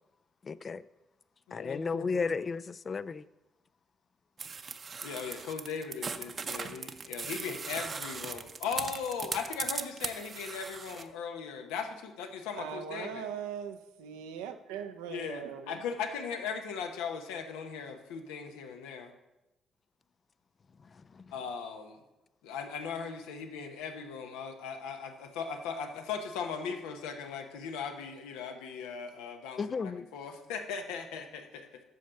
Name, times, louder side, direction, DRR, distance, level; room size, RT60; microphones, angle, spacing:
voice 1, 0.4-0.8 1.5-3.2 21.1-21.2 29.6-30.0, left 4 dB, 45° left, 0.4 m, -33 dB
voice 2, 1.5-2.2 5.0-13.3 15.1-19.1 21.3-22.0 22.4-31.8, left 6 dB, 85° left, 1.0 m, -38 dB
sound 1, 4.4-11.0, right 5 dB, 45° right, 0.8 m, -38 dB
voice 3, 12.6-15.8, right 8 dB, 85° right, 0.7 m, -40 dB
8.3 x 6.4 x 6.8 m
hypercardioid pair, 55°, 0 cm